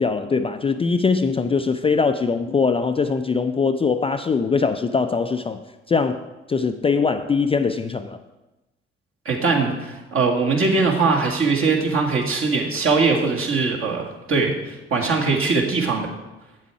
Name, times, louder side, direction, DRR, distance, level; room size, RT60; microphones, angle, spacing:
voice 1, 0.0-5.6 5.9-6.2 6.5-8.2, left 5 dB, 20° left, 8 dB, 0.4 m, -21 dB
voice 2, 9.3-14.0 14.3-16.1, right 4 dB, 45° right, 0 dB, 1.8 m, -21 dB
8.3 x 7.4 x 4.7 m, 1.0 s
figure-of-eight pair, 40°, 30 cm